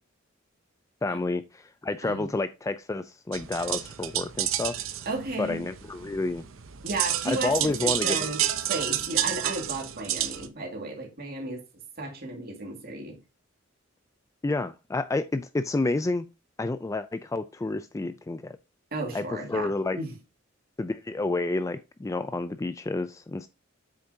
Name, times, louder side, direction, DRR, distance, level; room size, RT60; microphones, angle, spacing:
voice 1, 1.0-4.8 5.4-6.4 7.3-8.2 14.4-16.3 16.6-18.6 19.1-20.0 20.8-23.5, left 2 dB, 15° left, 0.3 m, -29 dB
voice 2, 2.0-2.3 5.1-5.6 6.8-11.6 12.0-13.2 18.9-19.7 20.0-20.1, right 2 dB, 50° right, 2.1 m, -34 dB
sound 1, 3.3-10.5, right 11 dB, 85° right, 0.7 m, -30 dB
8.1 x 6.5 x 2.7 m
head